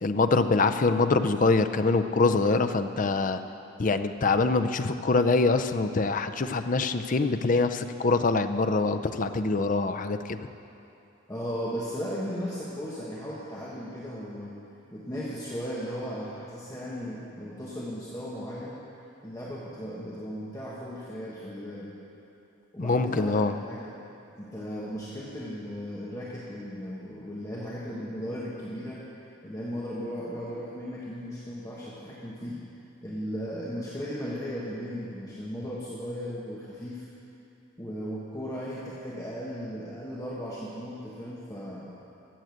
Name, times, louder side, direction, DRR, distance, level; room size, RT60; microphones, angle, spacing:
voice 1, 0.0-3.4 3.8-10.5 22.8-23.5, left 3 dB, 40° left, 9 dB, 0.5 m, -24 dB
voice 2, 11.3-14.5 14.9-18.8 19.2-21.9 22.7-23.9 24.4-29.0 29.4-32.6 33.0-37.1 37.8-41.9, equal, 20° left, -7 dB, 1.4 m, -36 dB
13.5 x 7.8 x 7.8 m, 2.9 s
head